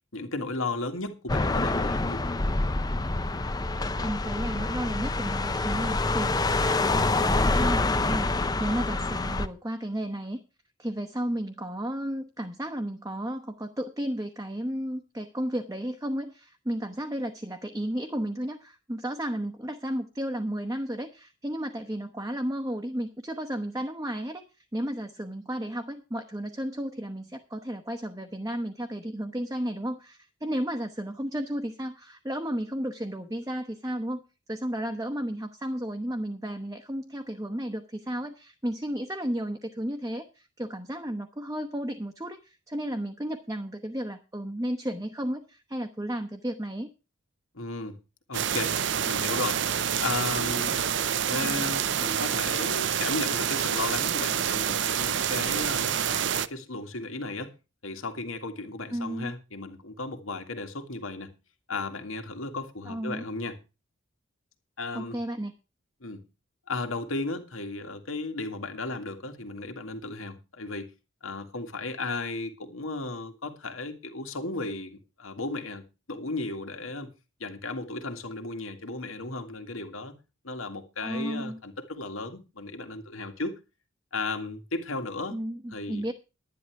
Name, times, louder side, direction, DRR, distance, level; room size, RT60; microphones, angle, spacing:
voice 1, 0.1-2.2 47.5-48.0 48.3-48.8 49.1-49.6 50.0-50.9 51.1-57.5 57.8-61.3 61.7-63.6 64.8-65.2 66.0-66.2 66.7-70.9 71.2-77.1 77.4-80.1 80.4-83.6 84.1-85.4 85.7-86.0, left 3 dB, 80° left, 2.1 m, -35 dB
sound 1, 1.3-9.5, left 2 dB, 20° left, 0.6 m, -26 dB
voice 2, 4.0-6.4 6.8-8.3 8.6-10.4 10.8-24.4 24.7-34.2 34.5-46.9 58.9-59.3 62.9-63.2 64.9-65.5 81.0-81.6 85.3-86.1, equal, 15° right, 0.9 m, -33 dB
sound 2, 48.3-56.5, right 8 dB, 55° right, 0.6 m, -27 dB
11.5 x 10.5 x 4.7 m
head